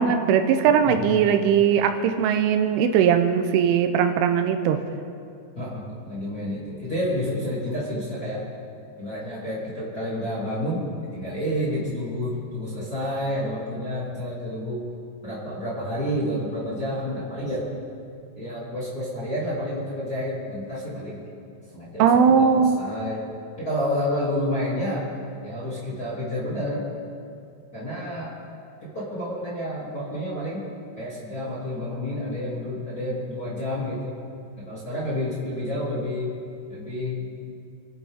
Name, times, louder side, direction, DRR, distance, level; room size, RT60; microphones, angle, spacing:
voice 1, 0.0-4.8 22.0-22.8, right 7 dB, 85° right, 8 dB, 3.2 m, -19 dB
voice 2, 0.8-1.3 5.5-8.4 9.0-14.9 15.2-17.7 18.3-21.2 21.7-23.2 23.6-25.1 25.4-26.9 27.7-28.3 28.8-30.7 31.0-34.1 34.6-36.3 36.7-37.5, left 1 dB, 25° left, -9 dB, 2.4 m, -29 dB
26.5 x 11.0 x 3.6 m, 2.5 s
omnidirectional pair, 5.7 m